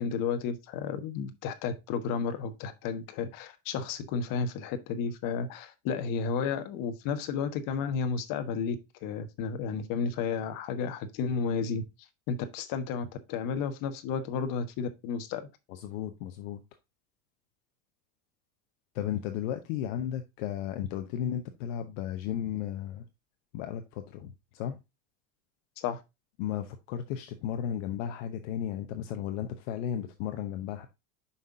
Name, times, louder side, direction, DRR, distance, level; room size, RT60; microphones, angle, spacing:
voice 1, 0.0-8.8 9.0-11.8 12.3-15.4 25.8-26.0, left 6 dB, 55° left, 1.3 m, -32 dB
voice 2, 15.7-16.6 18.9-23.0 23.5-24.8 26.4-30.9, left 10 dB, 70° left, 1.0 m, -34 dB
5.8 x 5.3 x 3.7 m
supercardioid pair, 115°, 40 cm